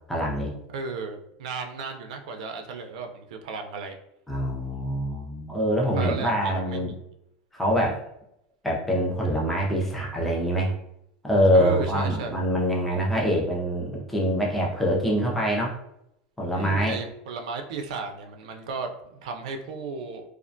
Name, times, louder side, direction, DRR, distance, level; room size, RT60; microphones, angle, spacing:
voice 1, 0.1-0.5 4.3-6.9 7.5-8.0 8.6-10.8 11.2-15.7 16.4-17.0, equal, 5° left, -3 dB, 0.4 m, -24 dB
voice 2, 0.7-4.0 5.9-6.9 11.5-12.4 16.5-20.2, right 4 dB, 80° right, 5 dB, 0.4 m, -34 dB
2.3 x 2.1 x 2.5 m, 0.79 s
supercardioid pair, 180°, 4 cm